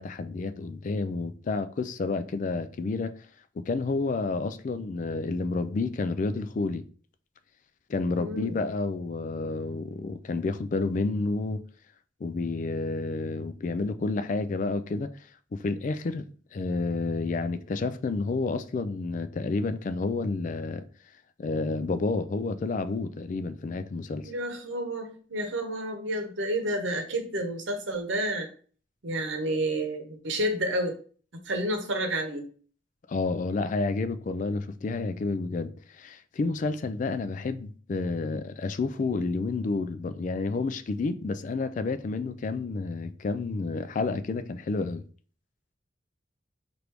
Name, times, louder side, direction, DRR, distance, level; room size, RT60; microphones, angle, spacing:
voice 1, 0.0-3.1 3.6-6.8 7.9-11.6 12.2-15.1 15.5-16.3 16.5-20.8 21.4-24.3 33.1-45.0, left 3 dB, 40° left, 0.3 m, -30 dB
voice 2, 8.2-8.6 24.2-28.5 29.0-30.9 31.5-32.5, right 1 dB, 75° right, 0.9 m, -30 dB
4.6 x 2.6 x 3.3 m
head